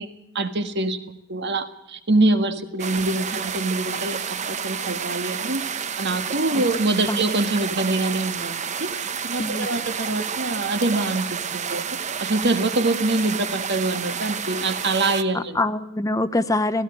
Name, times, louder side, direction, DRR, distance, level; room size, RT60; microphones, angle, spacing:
voice 1, 0.0-5.6 6.0-11.2 11.5-11.8 12.2-15.6, right 2 dB, 60° right, 8 dB, 1.7 m, -25 dB
sound 1, 2.8-15.2, right 7 dB, 35° right, 0.8 m, -30 dB
voice 2, 15.3-16.8, left 2 dB, 15° left, 12 dB, 0.7 m, -24 dB
17.5 x 16.0 x 9.9 m, 0.79 s
head